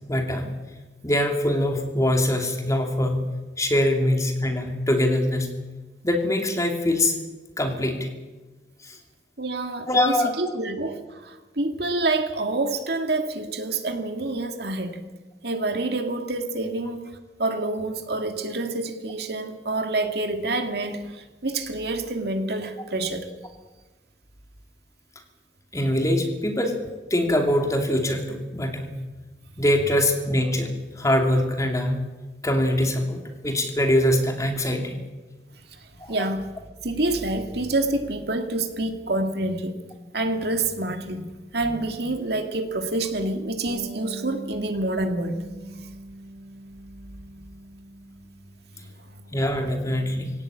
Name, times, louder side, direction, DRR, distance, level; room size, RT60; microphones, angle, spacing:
voice 1, 0.1-0.5 1.0-3.3 3.6-5.5 6.0-7.1 7.6-8.1 8.8-9.0 9.9-10.3 25.7-26.7 27.1-28.9 29.6-32.0 32.4-35.0 36.0-36.3 49.3-50.3, left 1 dB, 20° left, 3 dB, 2.8 m, -23 dB
voice 2, 9.4-15.1 15.4-17.0 17.4-23.3 35.7-35.8 36.1-36.5 36.8-39.8 40.1-45.4 48.8-48.9, right 2 dB, 60° right, 5 dB, 2.3 m, -27 dB
Bass guitar, 43.7-48.4 48.7-49.9, right 1 dB, 40° right, 3.2 m, -42 dB
20.0 x 17.5 x 8.8 m, 1.2 s
head